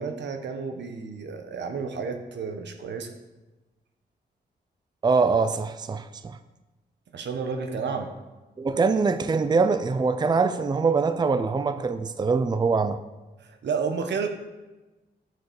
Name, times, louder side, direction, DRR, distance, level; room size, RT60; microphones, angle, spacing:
voice 1, 0.0-3.1 7.1-8.1 13.4-14.3, right 5 dB, 85° right, 6 dB, 1.3 m, -31 dB
voice 2, 5.0-6.4 8.6-13.0, right 4 dB, 25° right, 11 dB, 0.5 m, -23 dB
10.5 x 6.6 x 7.0 m, 1.1 s
wide cardioid pair, 140°, 18 cm